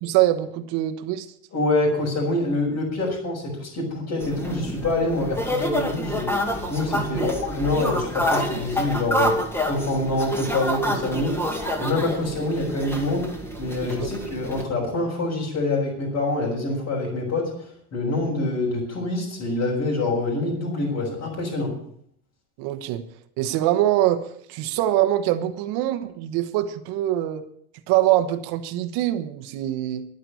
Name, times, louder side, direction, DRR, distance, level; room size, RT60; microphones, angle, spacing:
voice 1, 0.0-1.3 7.1-7.3 12.2-12.3 14.0-14.1 22.6-23.1 23.4-27.4 27.9-30.1, right 13 dB, 70° right, 8 dB, 1.4 m, -24 dB
voice 2, 1.5-13.3 13.6-17.5 17.9-21.7, left 2 dB, 45° left, -6 dB, 5.8 m, -26 dB
sound 1, 4.2-14.6, equal, 5° left, 2.2 m, -28 dB
11.5 x 9.4 x 8.4 m, 0.65 s
cardioid pair, 135°, 40 cm